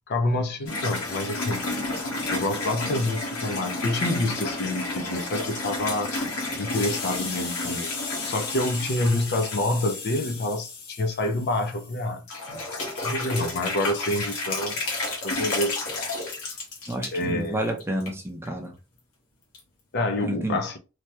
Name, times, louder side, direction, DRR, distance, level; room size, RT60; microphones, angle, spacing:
voice 1, 0.1-1.7 2.3-7.9 8.2-12.2 13.0-15.9 17.1-17.6 19.9-20.8, left 1 dB, 50° left, 0.5 m, -27 dB
sound 1, 0.7-11.9 12.3-17.2 17.7-18.1 18.5-18.6 19.5-19.6, left 2 dB, 80° left, 1.2 m, -31 dB
voice 2, 16.9-18.7 20.2-20.6, right 1 dB, 10° right, 0.6 m, -30 dB
3.3 x 2.1 x 2.9 m
head